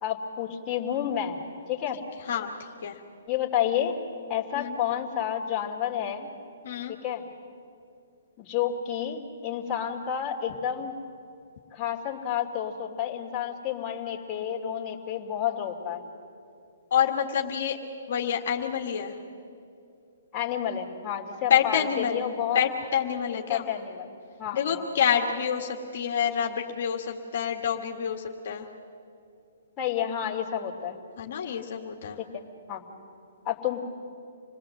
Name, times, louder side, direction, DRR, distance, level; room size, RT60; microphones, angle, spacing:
voice 1, 0.0-1.4 1.7-2.0 3.3-4.0 4.3-6.3 6.9-7.2 8.4-11.0 11.7-16.0 20.3-22.6 23.5-24.1 24.4-24.8 29.8-31.0 32.3-32.4 32.7-32.8 33.4-33.8, left 9 dB, 25° left, -2 dB, 2.7 m, -30 dB
voice 2, 6.6-6.9 16.9-17.8 18.1-19.2 21.5-22.2 22.5-23.7 24.5-28.7 31.2-32.2, left 8 dB, 60° left, 2 dB, 1.8 m, -27 dB
27.0 x 19.5 x 7.8 m, 2.6 s
hypercardioid pair, 140°, 0 cm